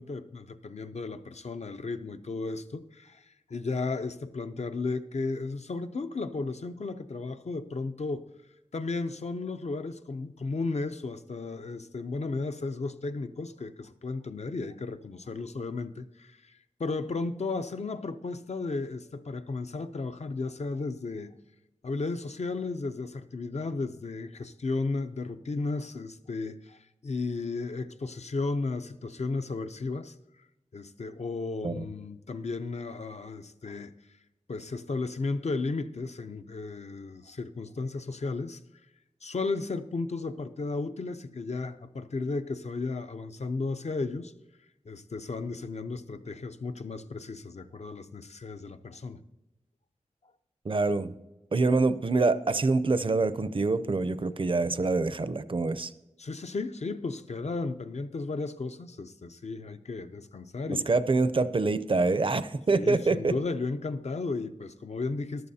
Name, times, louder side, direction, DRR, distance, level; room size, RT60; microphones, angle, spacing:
voice 1, 0.0-8.2 8.7-21.3 21.8-30.1 30.7-33.9 34.5-38.6 39.2-44.3 44.9-49.2 56.2-60.9 62.7-65.5, left 3 dB, 60° left, 9 dB, 0.6 m, -34 dB
voice 2, 50.6-51.1 51.5-55.9 60.7-63.3, right 3 dB, 45° right, 13 dB, 0.5 m, -26 dB
14.0 x 11.5 x 2.8 m, 0.97 s
wide cardioid pair, 65°, 13 cm